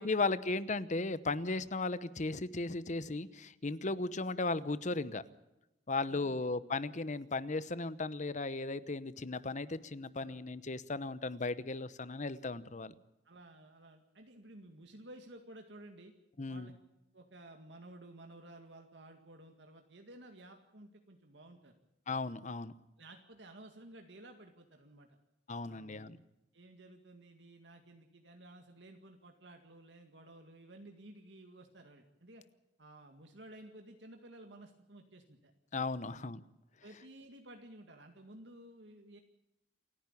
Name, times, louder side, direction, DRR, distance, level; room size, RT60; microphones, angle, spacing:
voice 1, 0.0-5.2 5.9-12.9 16.4-16.7 22.1-22.7 25.5-26.2 35.7-36.4, left 3 dB, 40° left, 15 dB, 0.9 m, -36 dB
voice 2, 6.1-6.5 10.2-10.5 13.2-16.1 16.5-16.7 17.1-21.7 23.0-25.1 25.7-26.2 26.5-32.4 32.8-35.5 36.0-36.3 36.8-39.2, right 1 dB, 75° right, 4 dB, 2.0 m, -54 dB
28.5 x 10.5 x 8.5 m, 0.92 s
head